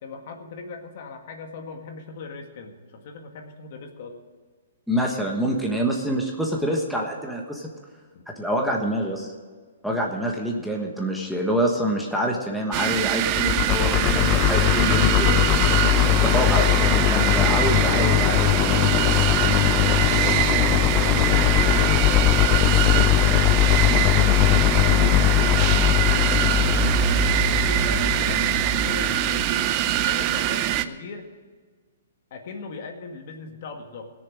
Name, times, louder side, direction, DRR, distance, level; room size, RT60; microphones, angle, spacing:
voice 1, 0.0-4.2 8.1-8.2 17.8-20.4 20.7-21.6 22.0-26.9 27.4-31.3 32.3-34.1, left 4 dB, 50° left, 4 dB, 1.8 m, -39 dB
voice 2, 4.9-7.7 8.3-9.3 9.8-18.5, equal, ahead, -1 dB, 1.4 m, -26 dB
sound 1, 12.7-30.8, right 13 dB, 30° right, 0.5 m, -23 dB
sound 2, 13.3-29.5, left 16 dB, 30° left, 0.3 m, -21 dB
17.0 x 6.9 x 7.5 m, 1.5 s
hypercardioid pair, 150°, 0 cm